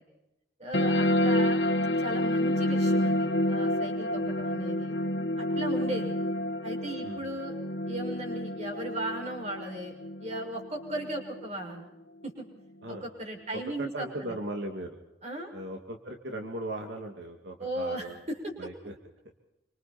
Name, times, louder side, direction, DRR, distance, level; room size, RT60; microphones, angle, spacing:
voice 1, 0.6-1.7 2.0-5.0 5.4-6.2 6.6-7.5 7.9-9.9 10.2-11.9 12.2-12.4 13.0-14.1 15.2-15.5 17.6-18.5, right 1 dB, 40° right, 2 dB, 6.3 m, -36 dB
sound 1, 0.7-11.7, left 1 dB, 80° left, 1.4 m, -29 dB
voice 2, 13.8-15.0 15.5-18.2 18.6-18.9, right 1 dB, 80° right, 3 dB, 2.6 m, -38 dB
28.0 x 25.5 x 4.4 m, 0.90 s
head